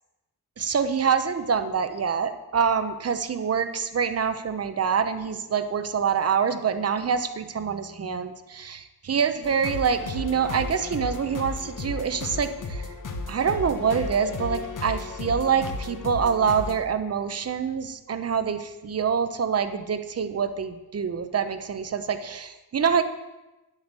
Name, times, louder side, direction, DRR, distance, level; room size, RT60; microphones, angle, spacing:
voice 1, 0.6-12.9 13.3-23.0, right 6 dB, 40° right, 10 dB, 0.9 m, -26 dB
sound 1, 9.4-16.8, left 3 dB, 55° left, 1.5 m, -34 dB
9.9 x 8.2 x 6.9 m, 1.1 s
wide cardioid pair, 130°, 38 cm